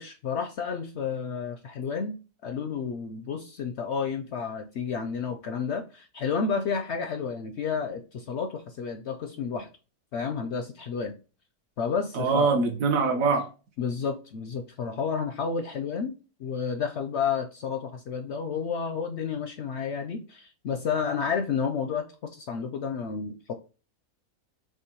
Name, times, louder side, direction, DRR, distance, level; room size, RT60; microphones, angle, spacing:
voice 1, 0.0-2.2 2.4-9.7 10.1-11.2 11.8-12.5 13.8-16.1 16.4-23.5, left 6 dB, 65° left, 0.7 m, -31 dB
voice 2, 12.1-13.5, right 4 dB, 70° right, 1.3 m, -23 dB
6.1 x 2.3 x 2.9 m
omnidirectional pair, 1.5 m